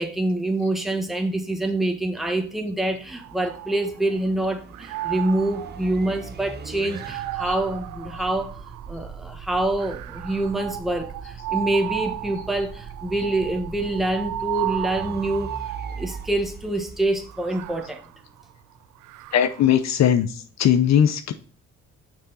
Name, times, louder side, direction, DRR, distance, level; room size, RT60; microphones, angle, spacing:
voice 1, 0.0-8.5 8.9-15.5 16.0-18.0, right 1 dB, ahead, 4 dB, 1.3 m, -26 dB
sound 1, 2.0-18.0, right 6 dB, 35° right, 0.8 m, -41 dB
sound 2, 3.1-4.3 4.7-9.1 9.8-16.5 17.2-19.8, right 14 dB, 85° right, 0.5 m, -35 dB
voice 2, 19.3-21.3, left 9 dB, 60° left, 10 dB, 0.7 m, -19 dB
6.3 x 4.9 x 4.0 m, 0.41 s
cardioid pair, 90°, 30 cm